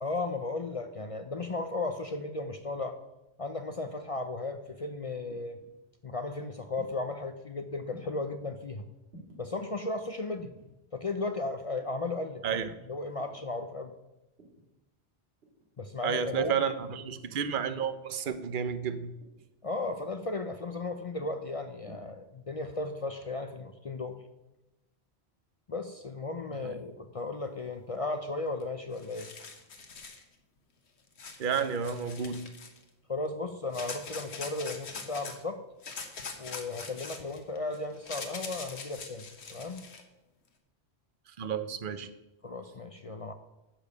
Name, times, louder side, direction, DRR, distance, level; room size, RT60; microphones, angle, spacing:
voice 1, 0.0-3.0 3.4-5.6 6.0-8.8 9.4-10.5 10.9-13.9 15.8-16.5 19.6-24.2 25.7-29.3 33.1-35.6 36.4-39.9 42.4-43.3, left 3 dB, 40° left, 8 dB, 0.6 m, -35 dB
sound 1, 2.4-2.9 3.8-4.2 5.3-5.7 6.7-7.2 7.9-8.4 9.1-9.4 10.3-10.7 11.8-12.1 13.2-13.5 14.4-14.7 15.4-15.7 16.8-17.1 17.9-18.2 19.2-19.5 20.0-20.3 21.2-21.5 21.9-22.0, right 1 dB, 75° right, 2.7 m, -54 dB
voice 2, 16.0-19.2 26.6-26.7 31.4-32.5 41.4-42.1, right 7 dB, 55° right, 11 dB, 0.9 m, -31 dB
sound 2, 28.6-28.7 28.9-30.2 31.2-32.8 33.7-35.4 35.8-40.0, left 4 dB, 85° left, 1.5 m, -43 dB
10.0 x 7.0 x 6.7 m, 0.98 s
omnidirectional pair, 1.1 m